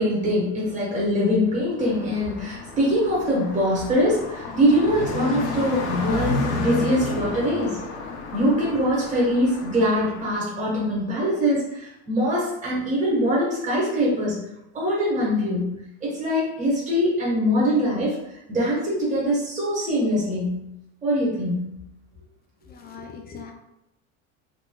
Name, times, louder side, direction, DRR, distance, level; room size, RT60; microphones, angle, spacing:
voice 1, 0.0-7.8 8.3-14.4 14.7-18.2 18.5-20.7 21.0-21.8, equal, 20° right, -6 dB, 1.2 m, -23 dB
Car passing by, 1.8-10.4, left 3 dB, 85° left, 0.8 m, -31 dB
voice 2, 22.7-23.5, left 5 dB, 30° left, 3 dB, 0.3 m, -40 dB
3.6 x 2.9 x 2.2 m, 0.87 s
supercardioid pair, 120°, 34 cm